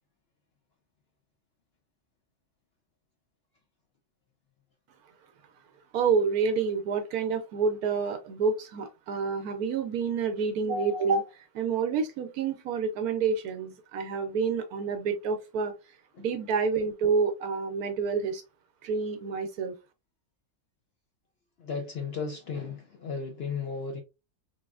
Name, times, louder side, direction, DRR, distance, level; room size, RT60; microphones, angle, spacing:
voice 1, 5.9-15.7 16.2-18.4 18.8-19.7, right 5 dB, 75° right, 1.1 m, -28 dB
voice 2, 21.6-24.0, left 5 dB, 60° left, 0.6 m, -35 dB
3.9 x 3.1 x 2.3 m
omnidirectional pair, 1.6 m